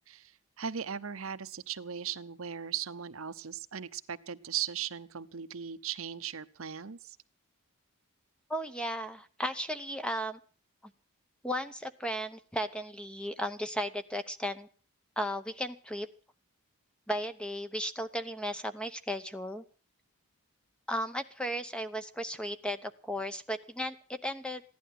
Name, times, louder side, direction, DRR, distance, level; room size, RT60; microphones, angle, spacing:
voice 1, 0.1-7.2, right 8 dB, 70° right, 12 dB, 0.8 m, -38 dB
voice 2, 8.5-10.4 11.4-14.7 15.2-16.1 17.1-19.6 20.9-24.6, equal, 5° left, 10 dB, 0.9 m, -35 dB
15.5 x 11.5 x 7.6 m, 0.40 s
head